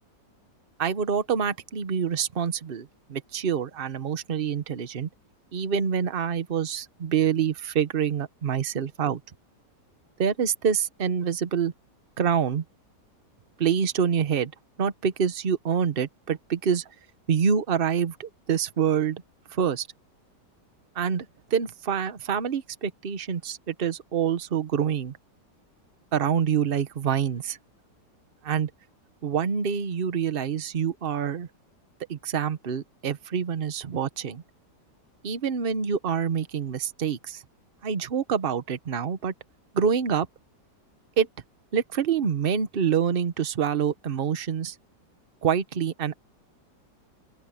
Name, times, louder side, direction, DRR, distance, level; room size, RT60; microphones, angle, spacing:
voice 1, 0.8-5.1 5.5-9.2 10.2-11.7 12.2-12.6 13.6-14.5 14.8-16.8 17.3-19.2 19.5-19.9 20.9-21.2 21.5-25.2 26.1-27.6 28.4-28.7 29.2-31.5 32.1-34.4 35.2-37.4 37.8-39.3 39.7-40.3 41.2-41.3 41.7-44.7 45.4-46.2, right 7 dB, 40° right, 1.0 m, -26 dB
open air
omnidirectional pair, 1.9 m